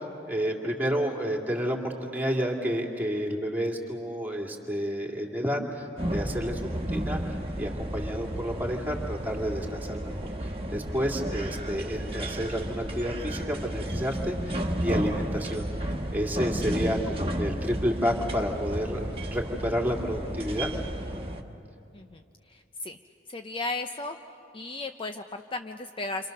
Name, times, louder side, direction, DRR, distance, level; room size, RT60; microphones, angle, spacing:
voice 1, 0.3-10.1 10.4-15.6 16.1-20.7, equal, 10° right, 0 dB, 2.4 m, -30 dB
sound 1, 6.0-21.4, right 1 dB, 30° right, 1.5 m, -32 dB
voice 2, 22.5-23.0 23.3-24.2 24.5-26.3, left 2 dB, 30° left, 6 dB, 0.6 m, -35 dB
29.0 x 26.0 x 6.6 m, 2.6 s
head